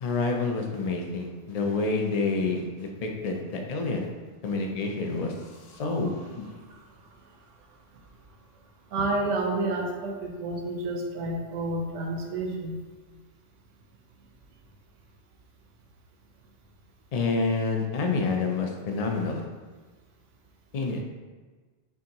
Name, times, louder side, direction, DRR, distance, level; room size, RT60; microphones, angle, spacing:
voice 1, 0.0-4.1 4.4-6.4 17.1-19.4 20.7-21.0, left 3 dB, 65° left, 2 dB, 0.3 m, -28 dB
voice 2, 8.9-12.8, right 2 dB, 85° right, 1 dB, 1.0 m, -30 dB
5.8 x 2.6 x 2.9 m, 1.3 s
omnidirectional pair, 1.2 m